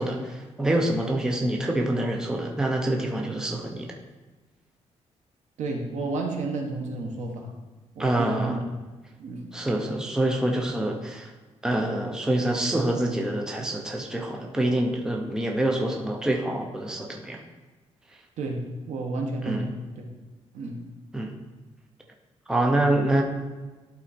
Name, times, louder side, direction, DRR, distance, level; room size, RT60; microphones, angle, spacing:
voice 1, 0.0-3.9 8.0-8.6 9.5-11.3 11.6-17.4 19.4-19.7 21.1-21.3 22.5-23.2, right 1 dB, 5° right, 1 dB, 0.6 m, -26 dB
voice 2, 5.6-7.5 7.9-8.6 9.2-9.4 18.4-20.1 20.5-20.8, right 2 dB, 80° right, 2 dB, 1.3 m, -31 dB
11.5 x 4.0 x 4.3 m, 1.2 s
cardioid pair, 170°, 12 cm